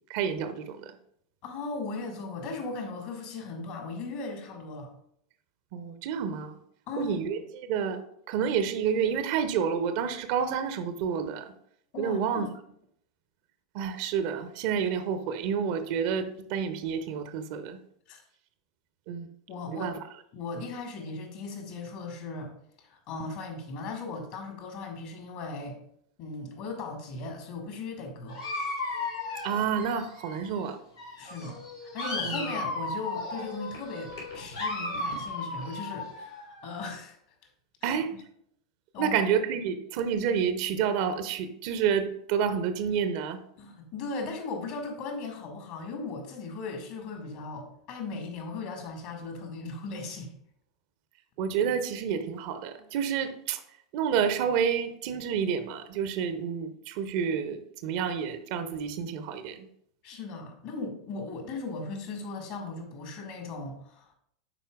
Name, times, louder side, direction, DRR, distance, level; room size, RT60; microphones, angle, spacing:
voice 1, 0.1-0.9 5.7-6.6 7.0-8.0 8.3-11.5 12.0-12.5 13.7-17.8 19.1-19.3 19.7-20.0 29.4-30.8 32.2-32.5 37.8-38.1 39.0-43.4 51.4-53.6 53.9-59.7, right 7 dB, 50° right, 10 dB, 0.6 m, -29 dB
voice 2, 1.4-4.9 6.9-7.1 11.9-12.5 18.1-18.2 19.5-19.9 20.3-22.5 22.8-25.8 26.2-28.4 31.2-37.2 37.8-38.0 38.9-39.2 43.6-50.3 60.0-64.2, left 3 dB, 50° left, 3 dB, 1.6 m, -37 dB
Dog, 28.3-30.7 31.0-36.9, left 2 dB, 80° left, 2.7 m, -35 dB
9.9 x 4.4 x 2.3 m, 0.71 s
figure-of-eight pair, 85°, 2 cm